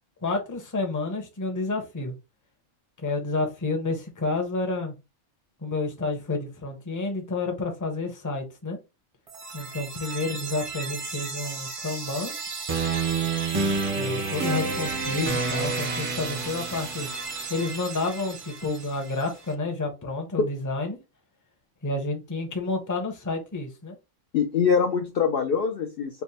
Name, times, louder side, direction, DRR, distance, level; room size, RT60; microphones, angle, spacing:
voice 1, 0.2-2.1 3.0-4.9 5.6-8.8 9.5-12.3 13.9-17.1 17.5-21.0 21.8-24.0, left 3 dB, 20° left, 0.6 m, -30 dB
sound 1, 9.3-19.2, right 4 dB, 35° right, 0.5 m, -30 dB
voice 2, 24.3-26.2, left 6 dB, 60° left, 0.6 m, -23 dB
3.4 x 2.1 x 4.1 m
omnidirectional pair, 1.3 m